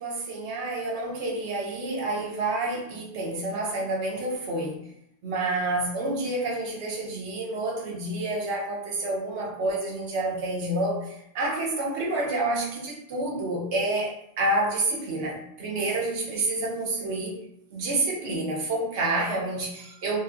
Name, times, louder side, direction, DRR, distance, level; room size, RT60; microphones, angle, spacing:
voice 1, 0.0-4.8 5.2-17.4 17.7-20.2, right 2 dB, 70° right, -2 dB, 0.9 m, -29 dB
2.8 x 2.4 x 2.3 m, 0.77 s
omnidirectional pair, 1.3 m